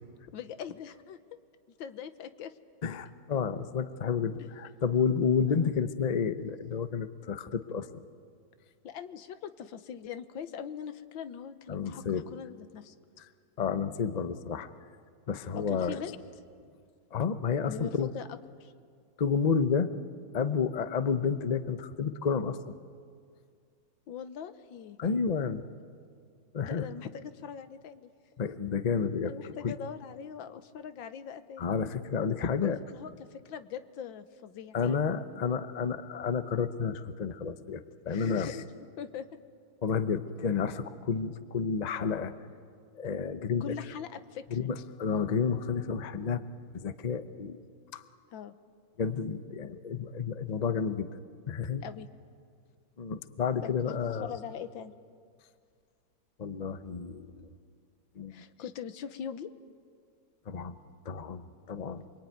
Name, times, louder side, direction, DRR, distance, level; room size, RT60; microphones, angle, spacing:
voice 1, 0.3-1.4 1.8-2.5 5.5-5.8 8.8-12.0 12.3-12.9 15.6-16.1 17.7-18.7 24.1-25.0 26.6-28.1 29.2-31.7 32.6-34.8 38.1-38.5 39.0-39.4 43.6-44.6 48.3-48.5 51.8-52.1 53.6-54.9 58.3-59.5, left 8 dB, 85° left, 11 dB, 1.7 m, -41 dB
voice 2, 2.8-8.0 11.7-12.2 13.2-13.3 13.6-14.7 15.3-16.2 17.1-18.1 19.2-19.9 20.3-22.6 25.0-25.6 26.5-26.9 28.4-29.8 31.6-32.8 34.7-38.6 39.8-42.3 43.0-43.8 44.5-46.4 46.7-47.6 47.9-48.0 49.0-51.1 51.5-51.8 53.0-54.4 56.4-57.6 58.2-58.7 60.5-60.7 61.0-62.0, left 6 dB, 45° left, 11 dB, 0.5 m, -31 dB
28.0 x 22.5 x 9.3 m, 2.2 s
omnidirectional pair, 2.1 m